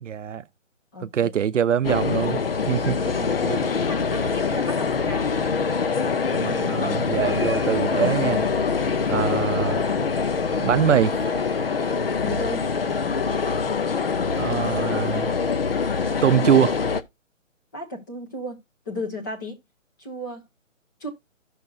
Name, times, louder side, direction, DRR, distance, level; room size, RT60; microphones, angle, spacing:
voice 1, 0.0-0.4 1.0-3.0 6.3-8.5 9.1-9.8 10.6-11.1 14.4-15.4 16.2-16.8, right 9 dB, 65° right, 0.6 m, -23 dB
voice 2, 0.9-1.3 2.8-5.3 8.8-9.0 12.2-12.7 17.7-18.6 18.9-19.6 20.0-20.4 21.0-21.1, equal, 15° left, 1.0 m, -34 dB
sound 1, 1.8-17.0, left 5 dB, 45° left, 0.6 m, -24 dB
12.0 x 6.5 x 2.4 m
hypercardioid pair, 175°, 40 cm